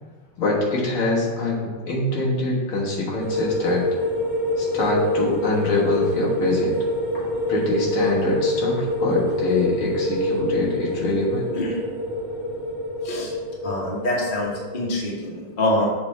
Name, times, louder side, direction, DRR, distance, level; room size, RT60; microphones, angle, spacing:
voice 1, 0.4-3.8 4.6-6.8 7.5-11.5, left 2 dB, 85° left, -4 dB, 2.3 m, -24 dB
sound 1, 3.2-14.9, equal, 15° right, 1.4 m, -26 dB
voice 2, 13.6-15.8, left 1 dB, 30° left, -3 dB, 1.2 m, -25 dB
6.9 x 3.3 x 5.6 m, 1.4 s
omnidirectional pair, 2.3 m